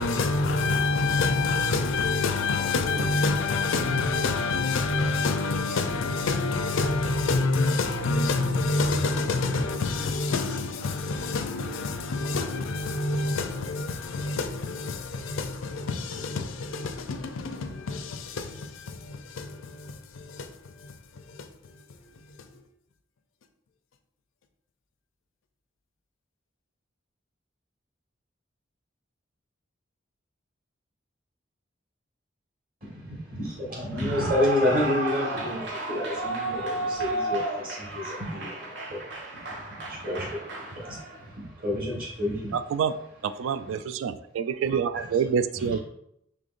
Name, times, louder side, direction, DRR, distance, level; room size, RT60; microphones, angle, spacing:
voice 1, 0.0-21.8, left 3 dB, 90° left, 0.5 m, -27 dB
voice 2, 32.8-42.9 43.3-43.8 44.6-45.2 45.5-45.8, left 1 dB, 45° right, 1.5 m, -30 dB
Clapping / Cheering / Applause, 33.9-41.3, right 2 dB, 65° right, 1.0 m, -33 dB
voice 3, 43.4-45.8, right 7 dB, 85° right, 0.3 m, -27 dB
5.2 x 3.4 x 2.5 m
head